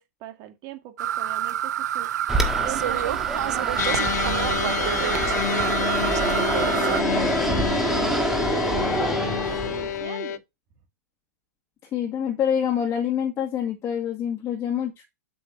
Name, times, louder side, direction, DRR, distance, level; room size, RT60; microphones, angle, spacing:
voice 1, 0.0-2.2 2.6-10.4, right 13 dB, 45° right, 2.2 m, -40 dB
sound 1, 1.0-7.0, right 11 dB, 75° right, 0.5 m, -27 dB
Fixed-wing aircraft airplane, 2.3-10.1, right 1 dB, 5° right, 1.6 m, -27 dB
sound 2, 3.8-10.4, left 10 dB, 75° left, 0.7 m, -28 dB
voice 2, 11.9-15.0, left 8 dB, 30° left, 2.0 m, -26 dB
7.7 x 6.2 x 2.9 m
hypercardioid pair, 120°, 9 cm